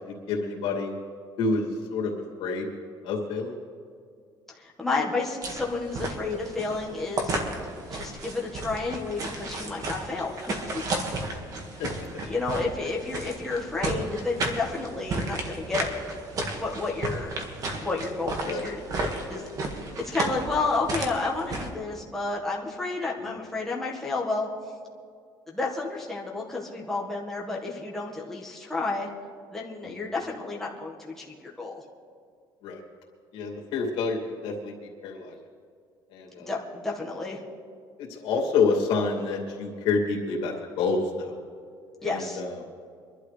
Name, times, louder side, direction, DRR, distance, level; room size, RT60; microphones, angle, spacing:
voice 1, 0.0-0.9 1.4-2.1 2.4-2.7 3.0-3.6 11.6-12.3 18.4-18.6 29.8-30.1 32.6-32.8 33.3-34.7 35.0-35.4 36.1-36.5 38.0-41.4 42.0-42.6, left 4 dB, 80° left, 0 dB, 2.5 m, -28 dB
voice 2, 4.5-7.4 7.9-10.8 12.2-15.9 16.6-17.3 17.8-18.8 19.1-19.7 20.0-24.5 25.5-29.1 29.5-31.8 36.5-37.4 42.0-42.4, left 3 dB, 5° left, -4 dB, 1.5 m, -31 dB
sound 1, 5.4-21.7, right 2 dB, 45° right, 1.8 m, -33 dB
24.5 x 12.0 x 3.3 m, 2.2 s
cardioid pair, 145°, 8 cm